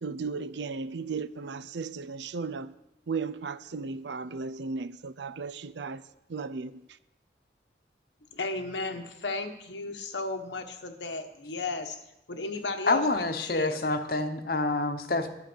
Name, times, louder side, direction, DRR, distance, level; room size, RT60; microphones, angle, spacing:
voice 1, 0.0-2.7 3.1-6.0 6.3-6.8, right 4 dB, 80° right, 0.5 m, -35 dB
voice 2, 8.3-12.0 12.3-13.8, left 3 dB, 90° left, 1.3 m, -34 dB
voice 3, 12.9-15.3, left 2 dB, 55° left, 1.0 m, -27 dB
11.5 x 8.9 x 6.3 m
head